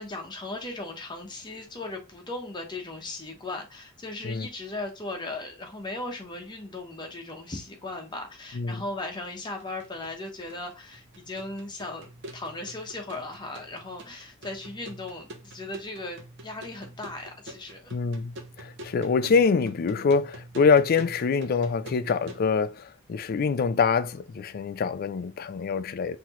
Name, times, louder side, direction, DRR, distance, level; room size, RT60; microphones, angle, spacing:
voice 1, 0.0-17.9, left 2 dB, 20° left, 1.0 m, -37 dB
sound 1, 9.6-22.5, right 1 dB, 60° right, 0.8 m, -45 dB
voice 2, 17.9-26.2, left 5 dB, 45° left, 0.3 m, -25 dB
5.8 x 2.8 x 3.0 m
head